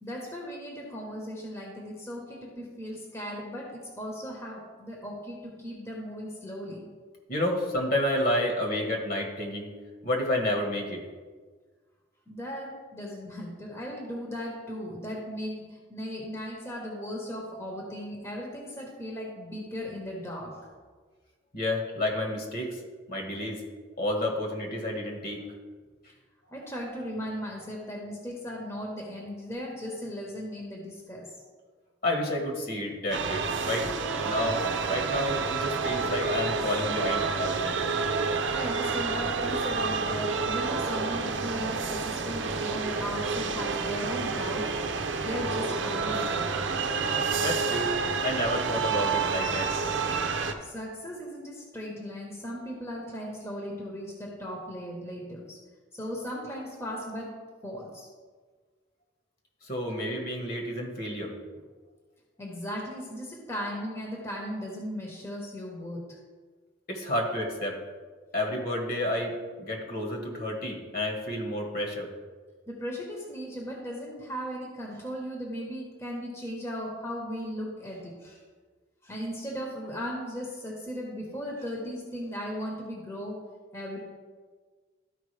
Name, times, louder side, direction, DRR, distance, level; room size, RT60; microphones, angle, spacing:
voice 1, 0.0-6.9 12.3-20.6 26.5-31.3 38.5-44.7 45.0-46.7 50.6-55.6 55.9-57.4 57.6-58.1 62.4-66.0 72.7-78.4 79.0-83.4 83.7-84.0, equal, 15° left, -2 dB, 1.1 m, -37 dB
voice 2, 7.3-9.7 10.0-11.0 21.5-22.8 23.1-23.6 24.0-25.4 32.0-33.9 34.2-37.8 47.4-47.9 48.2-49.7 59.6-61.3 66.9-67.8 68.3-69.3 69.6-72.1, left 1 dB, 50° left, 0 dB, 1.5 m, -30 dB
sound 1, 33.1-50.5, right 4 dB, 70° right, 0.7 m, -29 dB
13.0 x 5.1 x 3.3 m, 1.5 s
head